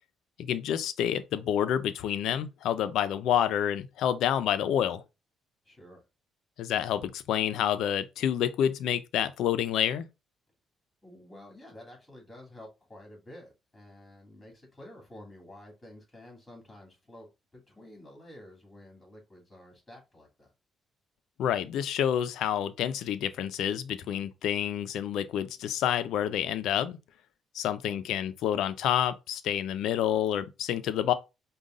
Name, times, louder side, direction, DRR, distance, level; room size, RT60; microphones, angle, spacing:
voice 1, 0.4-5.0 6.6-10.1 21.4-27.0 27.5-31.1, left 10 dB, 85° left, 0.4 m, -28 dB
voice 2, 5.6-6.0 11.0-20.5 27.8-28.3, left 1 dB, 15° left, 2.6 m, -50 dB
5.2 x 2.3 x 3.7 m
cardioid pair, 90°, 0 cm